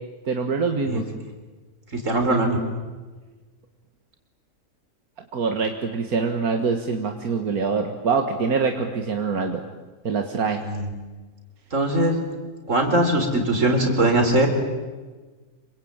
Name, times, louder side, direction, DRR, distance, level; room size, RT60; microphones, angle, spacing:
voice 1, 0.3-1.0 5.3-9.6 10.0-10.6, right 5 dB, 85° right, 5 dB, 2.1 m, -24 dB
voice 2, 1.9-2.6 10.6-10.9 11.7-12.2 12.7-14.5, right 1 dB, 60° right, 4 dB, 4.5 m, -21 dB
27.0 x 24.0 x 8.9 m, 1.3 s
omnidirectional pair, 1.5 m